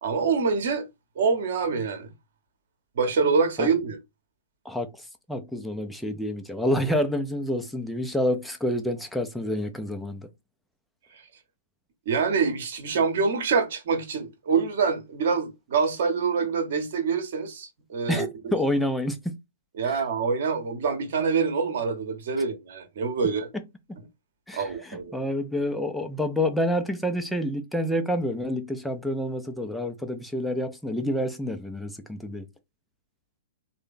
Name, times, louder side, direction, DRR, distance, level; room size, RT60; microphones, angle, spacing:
voice 1, 0.0-0.8 1.2-2.1 3.0-4.0 12.1-18.2 19.8-23.5 24.5-25.1, right 5 dB, 50° right, 0.9 m, -25 dB
voice 2, 4.6-10.3 18.1-19.4 19.8-20.0 23.5-23.6 24.5-32.5, equal, ahead, 0.5 m, -28 dB
3.2 x 2.1 x 3.6 m
figure-of-eight pair, 115°, 0 cm